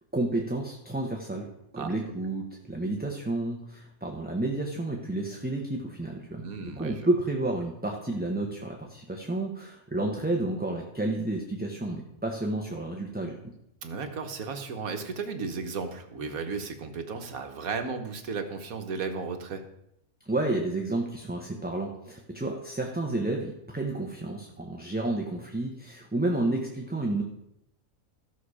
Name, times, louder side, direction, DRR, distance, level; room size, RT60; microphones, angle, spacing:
voice 1, 0.1-1.5 1.7-13.4 20.2-27.2, right 2 dB, 5° right, 0 dB, 0.9 m, -31 dB
voice 2, 6.4-7.1 13.8-19.6, right 5 dB, 70° right, 5 dB, 1.6 m, -34 dB
15.0 x 6.4 x 4.9 m, 0.79 s
omnidirectional pair, 1.5 m